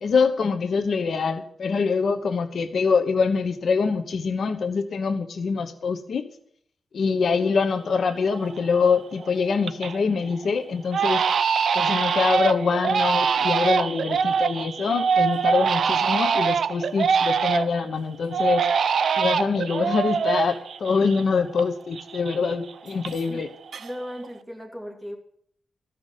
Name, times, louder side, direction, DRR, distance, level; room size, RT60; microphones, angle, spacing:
voice 1, 0.0-6.3 6.9-11.2 11.7-18.7 19.2-23.5, left 5 dB, 70° left, 9 dB, 1.0 m, -24 dB
Crying sobbing, 7.8-7.9 8.3-8.8 9.2-10.0 10.3-10.5 10.9-17.9 18.3-21.7 21.9-23.4 23.7-24.3, right 6 dB, 75° right, 0.6 m, -24 dB
voice 2, 23.8-25.2, equal, 5° right, 0 dB, 2.6 m, -36 dB
14.0 x 6.0 x 8.2 m, 0.66 s
wide cardioid pair, 115°, 0 cm